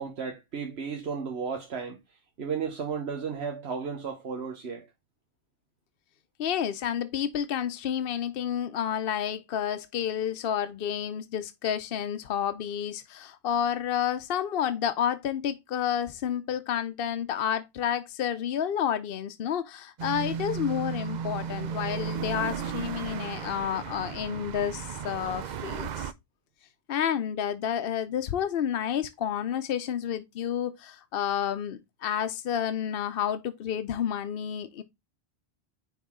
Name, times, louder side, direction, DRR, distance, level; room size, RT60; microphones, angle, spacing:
voice 1, 0.0-2.0 2.4-4.9, right 6 dB, 90° right, 1.3 m, -34 dB
voice 2, 6.4-26.1 26.9-34.8, left 9 dB, 65° left, 0.8 m, -30 dB
sound 1, 20.0-26.1, right 7 dB, 55° right, 0.6 m, -35 dB
9.3 x 3.9 x 3.6 m
omnidirectional pair, 1.0 m